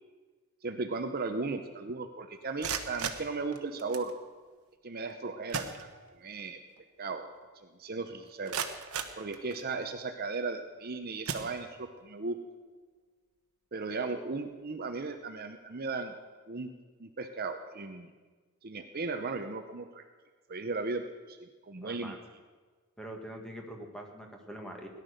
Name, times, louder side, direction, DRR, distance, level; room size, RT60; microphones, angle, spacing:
voice 1, 0.6-4.1 4.8-5.9 6.2-6.6 7.0-7.3 7.6-8.6 9.2-12.4 13.7-16.1 16.5-16.7 17.0-18.1 18.6-20.0 20.5-22.2, right 3 dB, 40° right, 6 dB, 0.8 m, -36 dB
sound 1, 2.4-4.1 5.1-5.2 5.5-6.4 6.8-6.9 7.4-7.5 8.1-9.9 10.6-10.8 11.2-12.1, right 6 dB, 75° right, 1.2 m, -38 dB
voice 2, 21.8-22.2 23.0-24.9, right 1 dB, 5° left, 2 dB, 1.7 m, -44 dB
17.5 x 11.0 x 6.5 m, 1.4 s
head